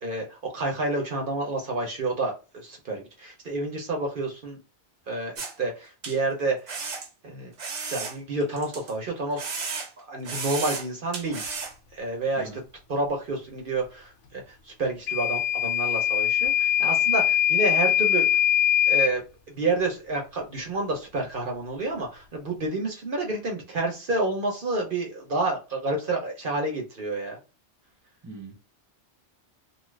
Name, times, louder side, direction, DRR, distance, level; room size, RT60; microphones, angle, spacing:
voice 1, 0.0-4.6 5.1-6.7 7.2-7.5 7.9-9.5 10.0-11.5 11.9-12.6 12.9-18.4 18.9-27.4, right 2 dB, 50° right, 0.9 m, -29 dB
sound 1, 5.4-5.5 6.0-6.2 6.7-7.1 7.6-8.9 9.4-10.0 10.2-10.9 11.1-11.7, right 4 dB, 80° right, 1.1 m, -33 dB
Microwave oven / Alarm, 15.1-19.2, left 10 dB, 90° left, 1.0 m, -22 dB
voice 2, 28.2-28.6, right 3 dB, 20° right, 0.6 m, -41 dB
2.8 x 2.4 x 3.1 m
omnidirectional pair, 1.2 m